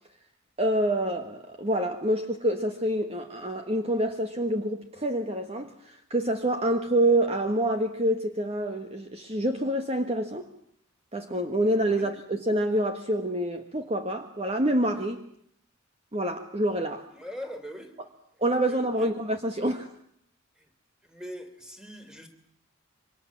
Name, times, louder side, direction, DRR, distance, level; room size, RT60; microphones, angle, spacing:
voice 1, 0.6-10.5 11.1-15.2 16.1-17.1 18.4-19.9, right 1 dB, 30° right, 6 dB, 1.5 m, -27 dB
voice 2, 17.1-17.9 18.7-19.1 21.1-22.3, equal, 5° right, 6 dB, 3.3 m, -41 dB
27.5 x 24.5 x 7.4 m, 0.68 s
head